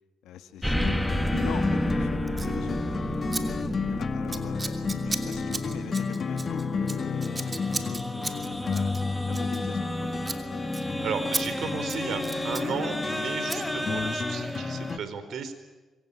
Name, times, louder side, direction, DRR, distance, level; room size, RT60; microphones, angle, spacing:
voice 1, 0.2-2.8 3.4-8.9 9.3-10.2, left 10 dB, 85° left, 8 dB, 1.9 m, -41 dB
sound 1, 0.6-15.0, equal, ahead, 2.0 m, -32 dB
sound 2, 0.7-15.0, left 5 dB, 40° left, 1.7 m, -33 dB
Scissors, 2.3-2.5 3.3-3.4 3.7-3.9 4.3-10.0 10.2-10.4 10.7-10.8 11.3-11.4 11.8-12.7 13.5-13.6, right 3 dB, 25° right, 2.9 m, -35 dB
voice 2, 11.0-15.5, right 6 dB, 65° right, 10 dB, 4.2 m, -34 dB
26.0 x 23.0 x 9.8 m, 1.3 s
cardioid pair, 90°, 0 cm